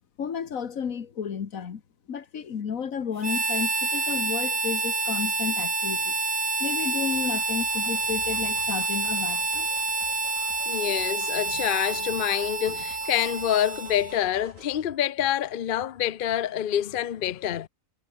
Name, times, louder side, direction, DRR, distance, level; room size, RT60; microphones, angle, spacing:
voice 1, 0.2-1.8 2.1-6.2 6.6-9.7, left 7 dB, 75° left, 1.8 m, -32 dB
Harmonica, 3.2-14.3, right 3 dB, 25° right, 1.3 m, -28 dB
sound 1, 7.1-14.8, right 2 dB, 70° right, 6.9 m, -51 dB
voice 2, 10.7-17.7, left 11 dB, 50° left, 0.7 m, -27 dB
omnidirectional pair, 1.4 m